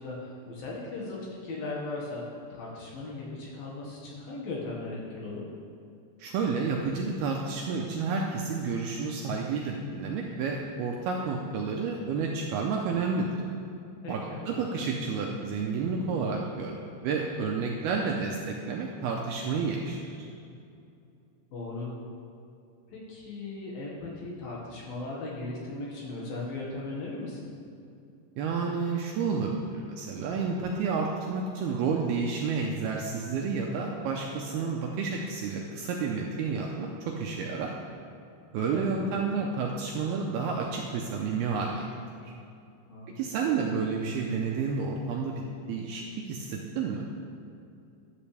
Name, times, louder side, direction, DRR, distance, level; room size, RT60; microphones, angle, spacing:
voice 1, 0.0-5.4 14.0-14.7 21.5-22.0 22.9-27.5 38.7-39.2 42.9-43.1 43.5-43.8, left 2 dB, 60° left, -4 dB, 3.1 m, -38 dB
voice 2, 6.2-13.3 14.1-16.8 17.0-20.3 28.4-37.7 38.5-41.9 42.2-42.3 43.2-47.1, right 5 dB, 75° right, -1 dB, 2.4 m, -30 dB
14.5 x 11.5 x 3.4 m, 2.5 s
omnidirectional pair, 5.2 m